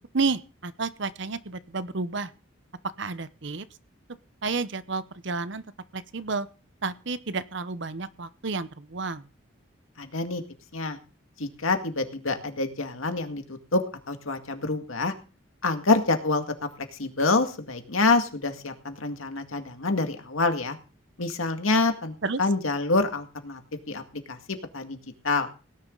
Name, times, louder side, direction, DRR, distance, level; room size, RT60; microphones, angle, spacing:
voice 1, 0.1-2.3 3.0-3.7 4.4-5.6 5.9-6.5 6.8-9.3 22.2-22.4, right 4 dB, 60° right, 14 dB, 0.8 m, -31 dB
voice 2, 10.0-10.4 10.7-11.0 11.4-13.8 14.1-15.1 15.6-16.4 17.0-20.8 21.2-23.6 23.9-24.0 24.3-25.0 25.2-25.5, left 3 dB, 80° left, 6 dB, 2.0 m, -26 dB
18.0 x 10.5 x 3.9 m, 0.35 s
head